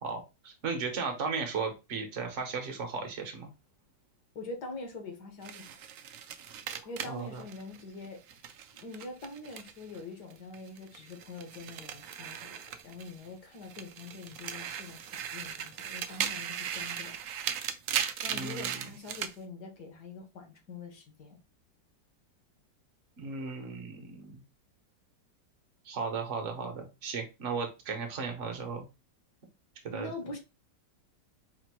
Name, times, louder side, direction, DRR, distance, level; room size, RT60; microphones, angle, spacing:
voice 1, 0.0-3.5 7.1-7.4 18.3-18.8 23.2-24.4 25.8-28.9 29.8-30.1, right 5 dB, 50° right, 1.2 m, -36 dB
voice 2, 4.3-5.8 6.8-8.4 8.7-12.5 12.8-17.2 18.2-21.4 29.9-30.4, left 3 dB, 65° left, 1.6 m, -44 dB
sound 1, 5.4-10.0 10.3-13.3 13.6-19.3, right 9 dB, 80° right, 0.7 m, -38 dB
5.1 x 2.7 x 2.9 m
omnidirectional pair, 2.0 m